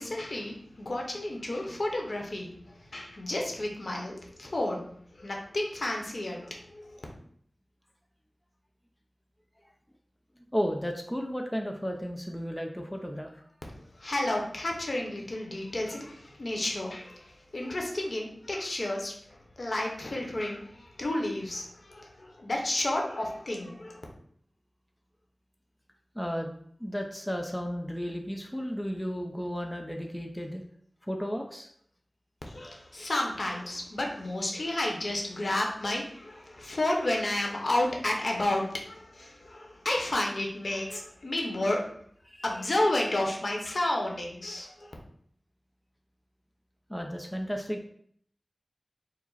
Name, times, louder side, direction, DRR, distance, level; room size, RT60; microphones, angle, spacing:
voice 1, 0.0-4.8 5.1-7.1 13.7-24.0 32.5-41.9 42.4-44.9, left 1 dB, 65° left, 0 dB, 0.9 m, -31 dB
voice 2, 10.5-13.4 26.1-26.5 26.8-30.6 31.0-31.7 42.3-42.4 46.9-47.8, equal, 5° left, 2 dB, 0.5 m, -33 dB
4.7 x 2.0 x 3.9 m, 0.64 s
wide cardioid pair, 75°, 0 cm